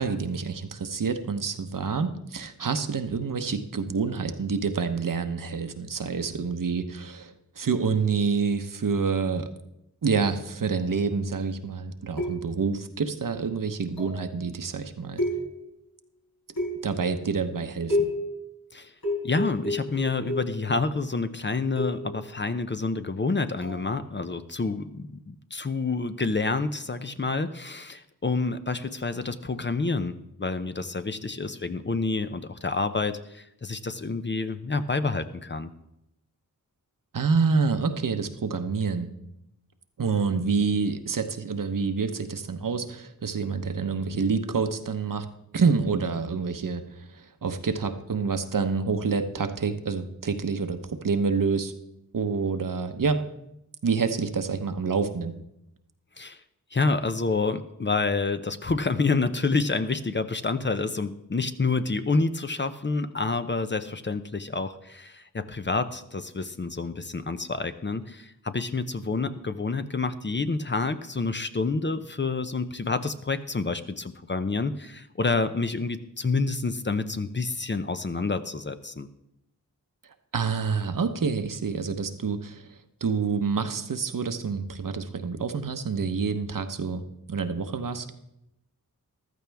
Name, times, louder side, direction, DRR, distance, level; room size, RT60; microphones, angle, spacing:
voice 1, 0.0-9.5 10.0-15.2 16.8-18.0 37.1-39.1 40.0-45.3 45.5-51.7 52.1-53.2 53.8-55.3 80.0-88.1, right 5 dB, 65° right, 8 dB, 1.0 m, -27 dB
sound 1, 12.2-12.7 14.0-14.3 15.2-15.8 16.6-17.1 17.9-18.4 19.0-20.7 21.8-22.2 23.6-23.8, left 1 dB, 80° left, 5.4 m, -30 dB
voice 2, 19.2-35.7 56.2-56.4 56.7-79.1, left 3 dB, 30° left, 10 dB, 0.7 m, -28 dB
14.5 x 12.5 x 3.5 m, 0.83 s
wide cardioid pair, 65°, 36 cm